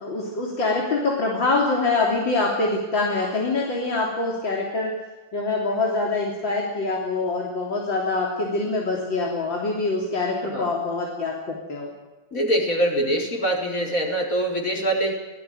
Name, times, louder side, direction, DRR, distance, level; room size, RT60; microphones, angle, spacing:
voice 1, 0.0-4.9 5.3-11.9, left 3 dB, 85° left, -1 dB, 4.1 m, -25 dB
voice 2, 12.3-15.1, right 1 dB, 45° left, 1 dB, 5.2 m, -24 dB
24.5 x 18.0 x 9.2 m, 1.1 s
omnidirectional pair, 2.0 m